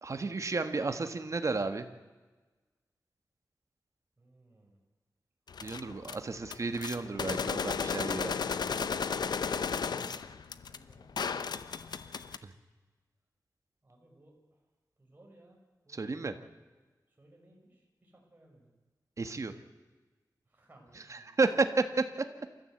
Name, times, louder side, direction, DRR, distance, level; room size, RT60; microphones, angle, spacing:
voice 1, 0.0-1.9 5.6-8.6 12.4-12.5 15.9-16.3 19.2-19.5 21.1-22.1, right 3 dB, 50° right, 8 dB, 1.6 m, -32 dB
voice 2, 4.2-4.8 5.6-6.5 9.4-11.6 13.8-14.4 15.0-15.6 15.8-16.1 17.1-18.7 20.4-21.3, right 1 dB, 25° right, -1 dB, 6.1 m, -61 dB
sound 1, 5.5-6.1 6.4-12.4, left 6 dB, 90° left, 0.9 m, -34 dB
27.5 x 14.0 x 8.0 m, 1.3 s
wide cardioid pair, 95°, 7 cm